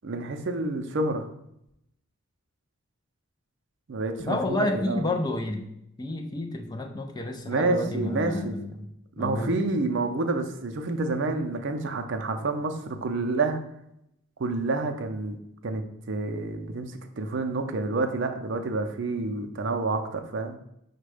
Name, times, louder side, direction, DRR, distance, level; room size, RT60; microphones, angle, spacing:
voice 1, 0.0-1.3 3.9-5.1 7.5-8.6 9.2-13.6 14.4-15.8 16.1-20.6, right 3 dB, 55° right, 6 dB, 0.5 m, -28 dB
voice 2, 4.2-5.7 6.0-8.8 9.2-9.5, left 2 dB, 20° left, 3 dB, 0.3 m, -30 dB
5.0 x 2.2 x 4.8 m, 0.79 s
head